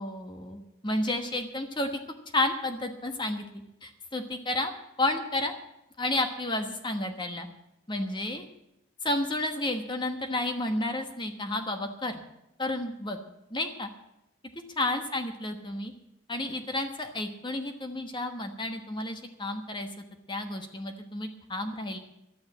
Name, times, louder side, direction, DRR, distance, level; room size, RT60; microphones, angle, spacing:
voice 1, 0.0-2.0 2.3-3.4 3.8-4.7 5.0-5.5 6.0-7.5 7.9-8.5 9.0-12.2 12.6-13.2 13.5-13.9 14.8-15.9 16.3-19.9 20.3-22.0, left 2 dB, 25° left, 6 dB, 1.2 m, -31 dB
12.0 x 9.6 x 8.4 m, 0.86 s
head